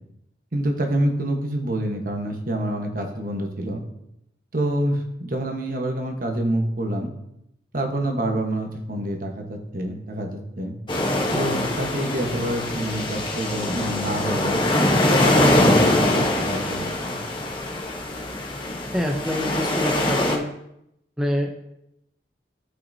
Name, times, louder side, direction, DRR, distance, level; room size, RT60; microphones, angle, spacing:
voice 1, 0.5-3.8 4.5-7.1 7.7-10.7 11.3-14.6 15.0-17.2, right 1 dB, 50° right, 3 dB, 1.2 m, -27 dB
sound 1, 10.9-20.4, left 1 dB, 25° left, 1.1 m, -23 dB
voice 2, 18.9-20.5 21.2-21.5, equal, 5° right, 0 dB, 0.6 m, -25 dB
14.0 x 5.7 x 2.8 m, 0.80 s
head